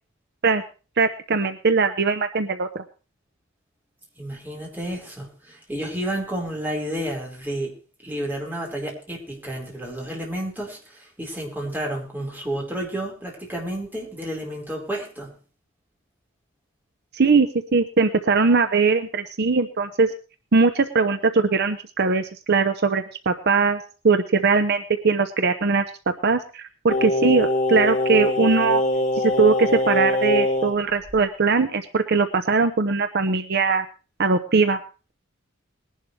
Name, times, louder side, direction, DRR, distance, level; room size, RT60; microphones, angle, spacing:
voice 1, 1.0-2.8 17.1-20.1 20.5-23.8 24.0-28.8 29.1-33.8 34.2-34.8, right 4 dB, 55° right, 9 dB, 0.8 m, -20 dB
voice 2, 4.2-7.7 8.0-15.3, right 1 dB, 10° right, -2 dB, 4.4 m, -31 dB
Singing, 26.9-30.8 31.1-31.2, left 1 dB, 35° left, 3.4 m, -23 dB
21.0 x 11.0 x 3.2 m, 0.34 s
head